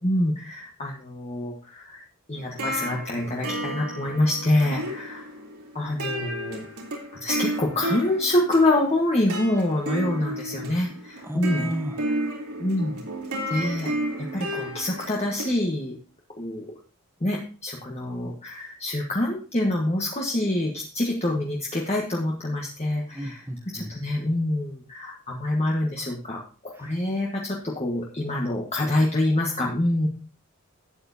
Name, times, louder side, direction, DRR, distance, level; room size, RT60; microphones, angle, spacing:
voice 1, 0.0-2.0 2.3-5.3 5.7-6.6 7.2-11.7 12.6-13.0 13.5-13.9 14.2-16.0 16.4-16.7 17.2-23.4 23.7-30.1, left 1 dB, 30° left, -2 dB, 1.4 m, -26 dB
sound 1, 2.3-15.5, right 1 dB, 90° right, 3.3 m, -32 dB
voice 2, 11.2-12.0 23.1-23.9 26.8-26.9, equal, 10° right, 6 dB, 0.9 m, -33 dB
12.5 x 8.8 x 2.8 m, 0.38 s
head